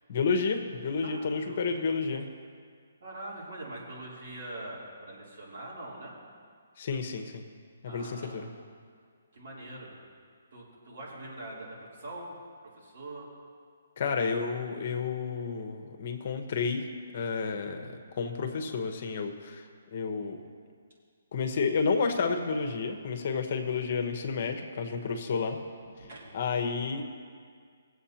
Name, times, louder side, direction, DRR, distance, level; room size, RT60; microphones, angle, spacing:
voice 1, 0.1-2.3 6.8-7.4 7.8-8.5 14.0-16.8 17.1-20.4 21.3-25.6 26.3-27.0, left 5 dB, 50° left, 5 dB, 1.0 m, -31 dB
voice 2, 1.0-1.9 3.0-6.1 7.8-8.5 9.3-10.0 10.5-13.3 23.3-23.4 24.8-25.1 26.0-26.4, right 1 dB, 65° right, -5 dB, 3.2 m, -43 dB
20.0 x 7.7 x 2.9 m, 2.1 s
hypercardioid pair, 155°, 0 cm